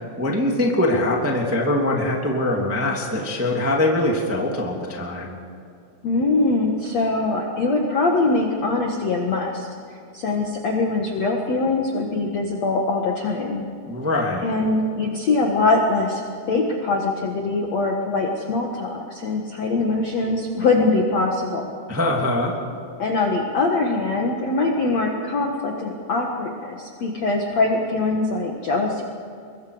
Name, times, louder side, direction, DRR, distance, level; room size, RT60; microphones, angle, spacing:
voice 1, 0.2-5.4 13.9-14.5 21.9-22.5, left 1 dB, 5° right, -1 dB, 1.5 m, -22 dB
voice 2, 6.0-9.7 10.1-13.7 14.4-21.7 23.0-29.0, left 3 dB, 55° left, 0 dB, 1.9 m, -22 dB
24.0 x 22.5 x 5.1 m, 2.4 s
omnidirectional pair, 5.3 m